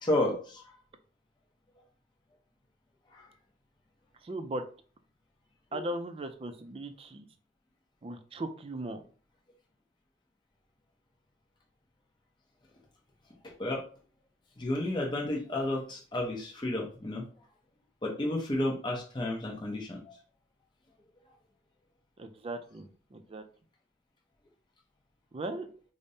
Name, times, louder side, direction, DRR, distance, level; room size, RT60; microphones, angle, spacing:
voice 1, 0.0-0.6 3.1-3.3 5.7-5.8 13.6-13.8 14.6-17.2 18.0-20.2, left 1 dB, 25° left, -1 dB, 0.7 m, -31 dB
voice 2, 4.2-4.6 5.7-7.3 8.0-9.0 22.2-23.4 25.3-25.7, right 1 dB, 30° right, 8 dB, 0.4 m, -38 dB
5.0 x 2.1 x 2.7 m, 0.40 s
head